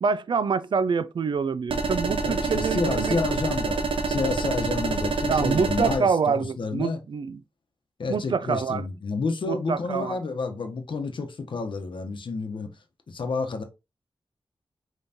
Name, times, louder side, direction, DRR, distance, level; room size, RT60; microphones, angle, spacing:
voice 1, 0.0-3.2 5.3-7.4 8.1-8.8 9.5-10.2, right 5 dB, 65° right, 0.4 m, -26 dB
sound 1, 1.7-6.0, right 4 dB, 85° right, 0.8 m, -27 dB
voice 2, 2.0-7.0 8.0-12.7 13.1-13.6, left 4 dB, 65° left, 0.9 m, -30 dB
5.4 x 3.1 x 2.8 m
wide cardioid pair, 125°, 9 cm